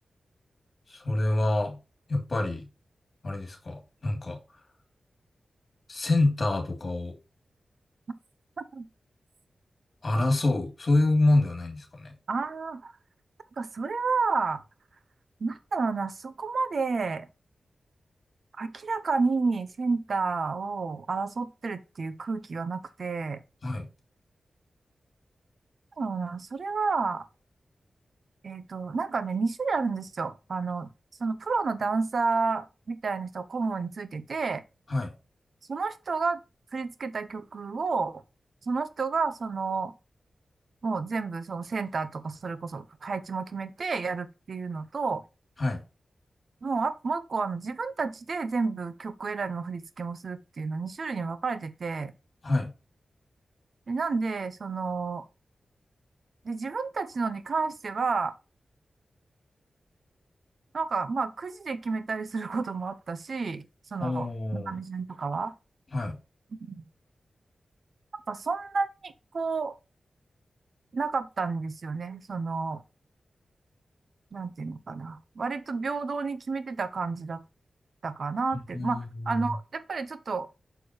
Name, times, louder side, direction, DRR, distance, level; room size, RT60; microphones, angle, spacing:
voice 1, 0.9-1.8 2.1-2.7 3.2-4.4 5.9-7.1 10.0-12.1 23.6-23.9 34.9-35.1 45.6-45.8 52.4-52.7 64.0-64.7 65.9-66.2 78.7-79.0 79.3-79.5, left 2 dB, 45° left, 2.8 m, -26 dB
voice 2, 12.3-12.9 13.6-14.6 15.4-17.3 18.5-23.4 26.0-27.3 28.4-30.9 31.2-34.6 35.7-36.4 36.7-38.2 38.6-39.9 40.8-45.2 46.6-52.1 53.9-55.3 56.4-58.3 60.7-63.6 63.9-65.5 66.6-66.8 68.3-69.7 70.9-72.8 74.3-77.4 78.0-80.5, right 4 dB, 60° right, 0.9 m, -30 dB
6.9 x 6.2 x 3.0 m
wide cardioid pair, 85°, 0 cm